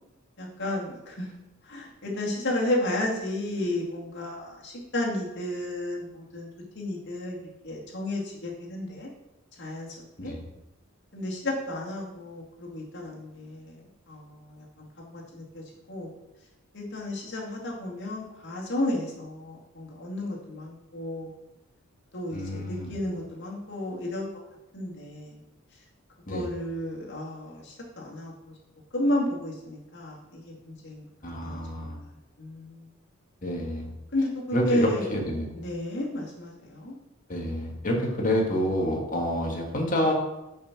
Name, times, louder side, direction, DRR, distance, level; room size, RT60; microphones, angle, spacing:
voice 1, 0.4-1.3 1.7-6.5 6.8-7.4 7.6-9.1 9.6-9.9 10.2-10.3 11.1-13.8 14.1-16.2 16.7-21.3 22.1-24.3 24.7-25.4 26.3-28.5 28.9-32.1 32.4-32.9 34.1-35.1 35.5-37.0, left 1 dB, 60° left, -2 dB, 2.2 m, -32 dB
voice 2, 22.3-22.9 26.3-26.5 31.2-32.0 33.4-33.9 34.5-35.5 37.3-40.1, equal, 40° left, 0 dB, 1.8 m, -28 dB
6.6 x 5.4 x 5.9 m, 0.93 s
head